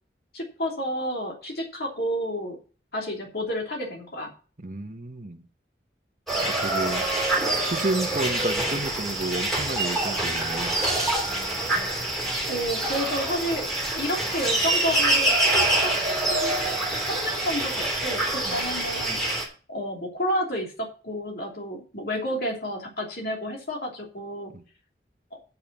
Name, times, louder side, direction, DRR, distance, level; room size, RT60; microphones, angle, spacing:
voice 1, 0.3-2.6 2.9-4.3 12.4-13.6 13.9-19.4 19.7-20.7 21.0-24.5, equal, 60° left, 0 dB, 3.0 m, -30 dB
voice 2, 4.6-5.4 6.4-7.1 7.6-10.8 18.4-18.6 24.5-24.6, right 2 dB, 45° right, 5 dB, 1.1 m, -31 dB
sound 1, 6.3-19.5, right 1 dB, ahead, 3.0 m, -26 dB
8.4 x 7.3 x 6.0 m, 0.37 s
head